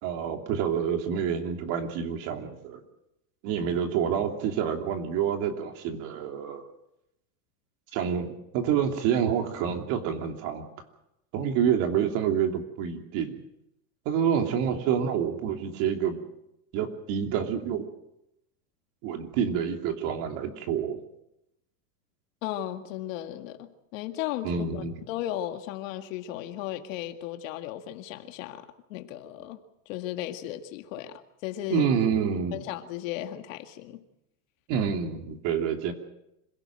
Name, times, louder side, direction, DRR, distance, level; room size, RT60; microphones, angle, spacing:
voice 1, 0.0-2.8 3.4-6.6 7.9-10.6 11.3-13.4 14.0-16.2 16.7-17.8 19.0-21.0 24.4-24.9 31.7-32.6 34.7-35.9, right 8 dB, 45° right, 3.0 m, -28 dB
voice 2, 22.4-28.6 28.9-29.6 29.9-31.9 32.5-34.0, left 12 dB, 55° left, 2.1 m, -35 dB
26.5 x 17.0 x 7.7 m
supercardioid pair, 155°, 46 cm